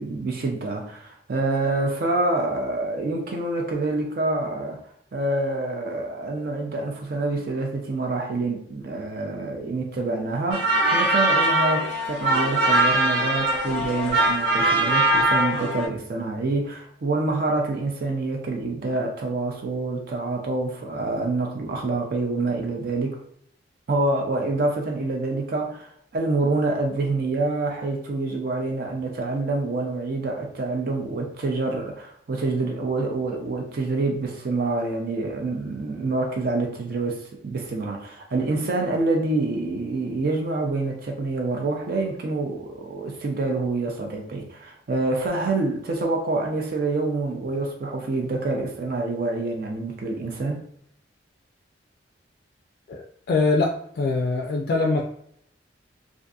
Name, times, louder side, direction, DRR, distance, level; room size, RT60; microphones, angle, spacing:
voice 1, 0.0-4.8 5.1-23.2 23.9-50.7, right 2 dB, 55° right, 1 dB, 0.4 m, -27 dB
sound 1, 10.5-15.9, right 2 dB, 80° right, 0.8 m, -21 dB
voice 2, 52.9-55.0, left 3 dB, 55° left, 0 dB, 0.3 m, -23 dB
2.6 x 2.4 x 2.3 m, 0.67 s
head